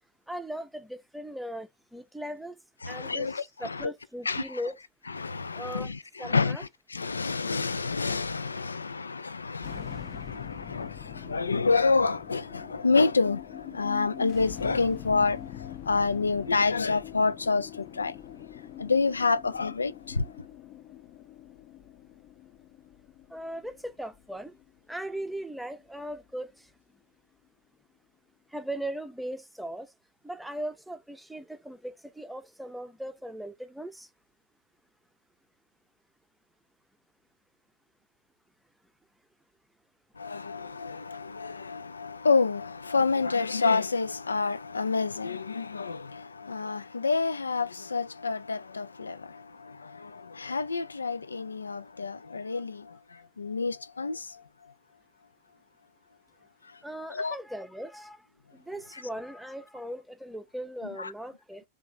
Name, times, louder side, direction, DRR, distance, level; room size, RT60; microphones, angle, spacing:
voice 1, 0.3-2.6 2.9-4.8 5.5-5.9 6.2-6.6 23.3-24.5 24.9-26.5 28.5-29.9 30.2-34.1 56.8-58.2 58.5-61.6, right 1 dB, ahead, 0.6 m, -38 dB
voice 2, 2.8-3.9 4.3-4.6 5.1-15.4 15.9-18.1 18.8-20.2 40.2-49.2 50.0-52.8 53.4-54.2 57.1-57.4 61.0-61.1, left 4 dB, 75° left, 0.4 m, -28 dB
sound 1, 9.6-26.0, left 12 dB, 40° left, 0.7 m, -44 dB
3.5 x 2.9 x 3.7 m
figure-of-eight pair, 90°, 0 cm